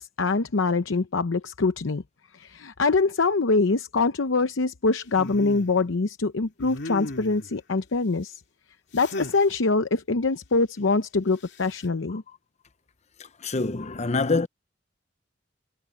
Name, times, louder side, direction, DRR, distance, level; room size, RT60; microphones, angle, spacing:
voice 1, 0.0-2.0 2.3-8.4 8.9-12.2, left 3 dB, 80° left, 0.8 m, -24 dB
sound 1, 5.1-5.7 6.6-7.5 8.9-9.4 11.4-11.8, left 2 dB, 60° left, 2.5 m, -36 dB
voice 2, 13.2-14.5, left 3 dB, 35° left, 0.8 m, -26 dB
head